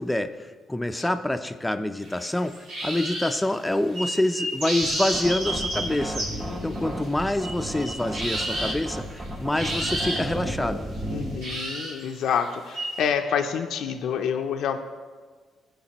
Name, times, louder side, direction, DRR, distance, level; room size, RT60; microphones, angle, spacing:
voice 1, 0.0-6.3 6.6-10.9, left 1 dB, 10° left, 9 dB, 0.5 m, -27 dB
sound 1, 2.0-3.4 3.9-6.8 7.0-9.2 9.5-10.4 11.4-13.1, right 1 dB, 90° right, 2.3 m, -31 dB
sound 2, 4.8-11.5, right 1 dB, 40° right, 2.5 m, -33 dB
voice 2, 6.3-7.1 11.1-14.8, left 7 dB, 80° left, 5 dB, 0.5 m, -28 dB
14.5 x 5.2 x 2.9 m, 1.5 s
cardioid pair, 80°, 0 cm